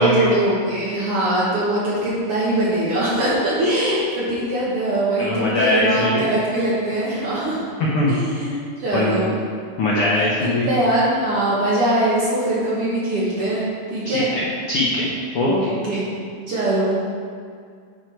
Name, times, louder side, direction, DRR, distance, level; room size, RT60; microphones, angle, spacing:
voice 1, 0.0-7.6 8.1-9.3 10.1-13.6 13.9-14.3 15.4-16.1 16.5-16.9, right 1 dB, 60° right, -7 dB, 1.6 m, -22 dB
voice 2, 5.2-6.2 7.9-8.1 8.9-9.3 9.8-10.7 14.0-15.1 15.3-15.8, left 1 dB, 80° left, -5 dB, 1.3 m, -21 dB
9.5 x 4.5 x 4.6 m, 2.1 s
omnidirectional pair, 3.9 m